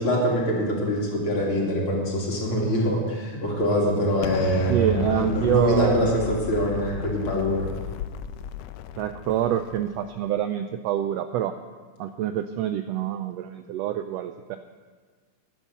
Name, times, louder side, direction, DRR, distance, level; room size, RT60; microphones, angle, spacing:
voice 1, 0.0-6.2 6.5-7.7, equal, 45° left, -3 dB, 3.4 m, -24 dB
Explosion, 4.2-10.2, left 9 dB, 85° left, 1.4 m, -34 dB
voice 2, 4.7-6.1 9.0-11.5 12.0-14.6, right 11 dB, 85° right, 9 dB, 1.4 m, -26 dB
14.5 x 11.0 x 5.6 m, 1.5 s
omnidirectional pair, 3.5 m